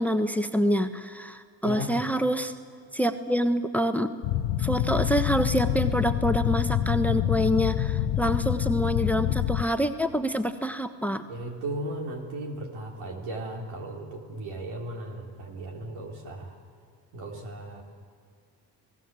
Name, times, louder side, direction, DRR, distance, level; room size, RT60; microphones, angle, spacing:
voice 1, 0.0-2.5 2.9-4.1 4.6-11.2, equal, 5° left, 9 dB, 1.2 m, -26 dB
voice 2, 1.6-2.1 11.3-16.6 17.1-17.8, right 1 dB, 80° right, 1 dB, 4.0 m, -36 dB
sound 1, 4.2-9.6, left 12 dB, 70° left, 1.1 m, -26 dB
29.5 x 18.0 x 7.7 m, 2.1 s
supercardioid pair, 60°, 48 cm